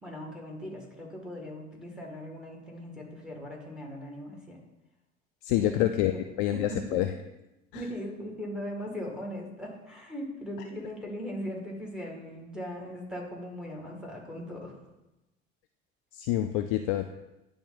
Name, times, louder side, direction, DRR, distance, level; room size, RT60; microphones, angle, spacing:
voice 1, 0.0-4.6 5.6-5.8 6.5-7.0 7.7-14.8, equal, ahead, 0 dB, 2.0 m, -39 dB
voice 2, 5.4-6.1 6.4-7.1 7.7-7.9 16.1-17.1, left 13 dB, 45° left, 7 dB, 0.4 m, -27 dB
9.9 x 3.4 x 4.0 m, 0.99 s
figure-of-eight pair, 70°, 39 cm